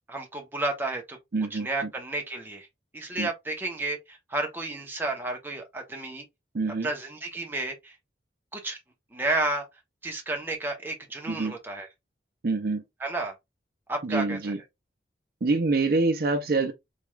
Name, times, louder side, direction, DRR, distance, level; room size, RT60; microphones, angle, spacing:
voice 1, 0.1-1.2 1.5-2.7 2.9-6.2 6.7-7.9 8.5-8.8 9.1-9.6 10.0-11.9 13.0-13.3 13.9-14.5, right 2 dB, 10° right, 0.8 m, -31 dB
voice 2, 1.3-1.7 3.2-3.3 6.5-6.9 11.3-11.5 12.4-12.8 14.0-14.6 15.4-16.7, right 3 dB, 50° right, 0.5 m, -25 dB
3.4 x 2.4 x 3.1 m
head